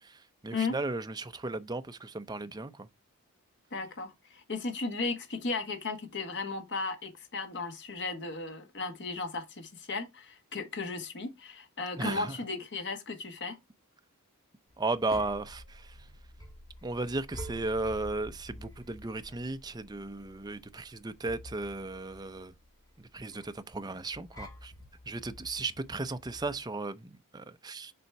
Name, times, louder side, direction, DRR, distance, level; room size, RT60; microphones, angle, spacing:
voice 1, 0.0-2.9 12.0-12.4 14.8-16.0 16.8-22.5 23.0-24.7 25.1-27.9, right 2 dB, 20° right, 0.6 m, -35 dB
voice 2, 3.7-13.6, left 3 dB, 55° left, 1.6 m, -35 dB
sound 1, 14.7-26.6, equal, 15° left, 2.0 m, -49 dB
6.8 x 4.3 x 4.6 m
head